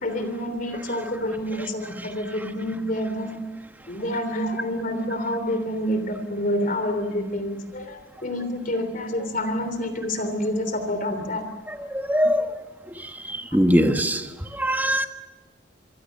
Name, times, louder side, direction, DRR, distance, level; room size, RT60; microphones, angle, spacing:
voice 1, 0.0-3.3 3.9-11.5, left 1 dB, 45° left, 8 dB, 3.3 m, -28 dB
voice 2, 2.0-2.5 11.7-12.5 13.0-14.3 14.5-15.1, equal, 10° right, 6 dB, 1.3 m, -23 dB
26.0 x 23.5 x 6.6 m, 1.3 s
head